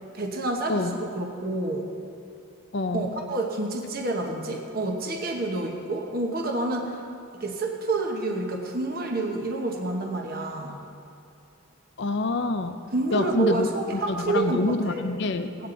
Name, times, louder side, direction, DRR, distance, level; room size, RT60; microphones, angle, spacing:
voice 1, 0.1-1.9 2.9-7.0 7.4-10.8 12.9-15.0 15.6-15.7, right 2 dB, 45° right, 1 dB, 1.1 m, -28 dB
voice 2, 2.7-3.1 12.0-12.8 13.1-15.7, left 2 dB, 55° left, 8 dB, 0.6 m, -26 dB
18.5 x 8.7 x 3.9 m, 2.6 s
head